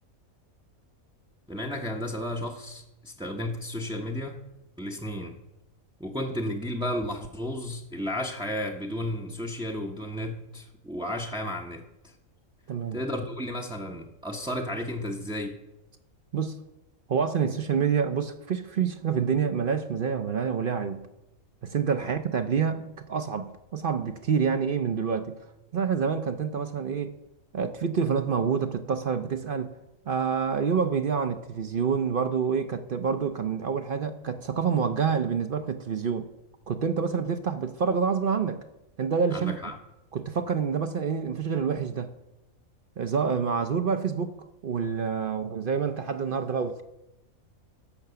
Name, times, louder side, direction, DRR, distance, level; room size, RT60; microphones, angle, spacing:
voice 1, 1.5-4.4 4.8-5.4 6.0-12.1 12.9-15.6 22.0-22.1 39.3-39.8, left 1 dB, 5° right, 0.5 m, -33 dB
voice 2, 12.7-13.0 16.3-16.6 17.1-21.0 21.6-25.3 25.7-27.1 27.5-29.7 30.1-36.3 36.7-38.6 39.0-39.6 40.1-42.1 43.0-44.3 44.6-46.8, right 6 dB, 50° right, 0.6 m, -27 dB
14.0 x 5.8 x 6.8 m
omnidirectional pair, 1.5 m